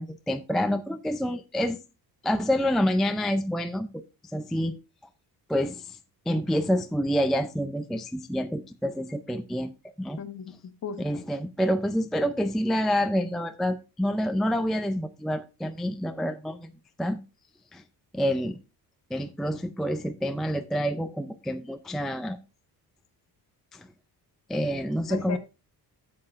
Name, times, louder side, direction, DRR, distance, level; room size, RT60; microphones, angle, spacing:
voice 1, 0.0-1.8 2.2-4.0 4.3-4.7 5.5-6.0 6.3-9.7 10.0-10.2 11.0-16.7 17.0-17.2 17.7-17.8 18.1-18.6 19.1-22.4 23.7-23.9 24.5-25.4, equal, ahead, 0.4 m, -27 dB
voice 2, 10.2-11.2 25.1-25.4, left 6 dB, 40° left, 1.3 m, -37 dB
13.0 x 7.7 x 2.5 m
cardioid pair, 145°, 39 cm